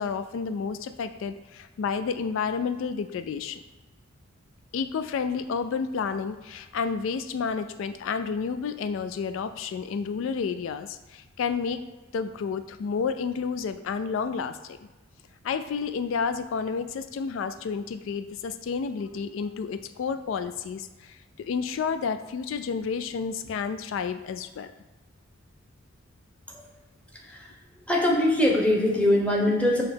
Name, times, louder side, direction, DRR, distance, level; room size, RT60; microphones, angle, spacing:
voice 1, 0.0-3.6 4.7-11.8 12.1-14.9 15.4-24.7, left 5 dB, 80° left, 11 dB, 0.3 m, -30 dB
voice 2, 27.1-27.5 27.9-29.8, left 1 dB, 5° left, -1 dB, 0.9 m, -22 dB
6.9 x 3.0 x 5.1 m, 1.1 s
head